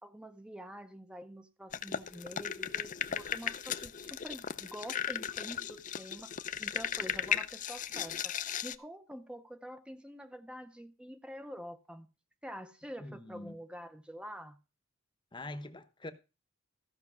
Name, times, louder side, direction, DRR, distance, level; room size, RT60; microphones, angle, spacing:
voice 1, 0.0-6.3 6.6-8.4 8.6-12.1 12.4-14.6, equal, 5° right, 0.6 m, -47 dB
sound 1, 1.7-8.8, left 8 dB, 40° left, 0.5 m, -36 dB
voice 2, 13.0-13.6 15.3-16.1, left 2 dB, 20° left, 0.9 m, -44 dB
14.5 x 5.9 x 6.0 m
head